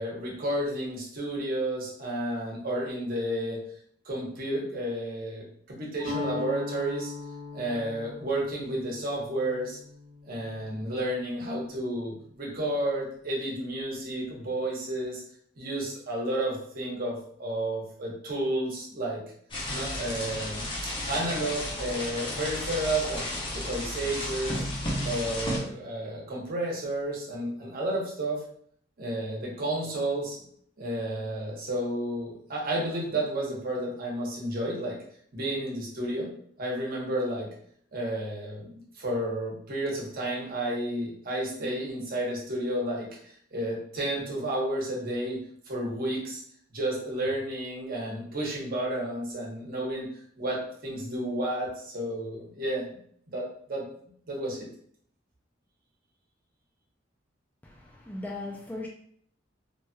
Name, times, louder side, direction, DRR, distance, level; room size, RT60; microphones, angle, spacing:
voice 1, 0.0-3.6 4.0-7.1 7.5-9.8 10.2-15.2 15.6-19.2 19.7-23.3 23.5-24.6 25.0-28.4 29.0-30.4 30.8-35.0 35.3-36.3 36.6-37.5 37.9-45.4 45.7-46.4 46.7-50.1 50.4-52.8 53.3-53.9 54.3-54.6, right 1 dB, 50° right, 1.0 m, -31 dB
Guitar, 6.0-12.0, left 4 dB, 70° left, 1.4 m, -40 dB
sound 1, 19.5-25.6, left 1 dB, 25° left, 0.7 m, -33 dB
voice 2, 57.6-58.9, left 2 dB, 10° left, 0.3 m, -38 dB
3.1 x 2.9 x 2.2 m
head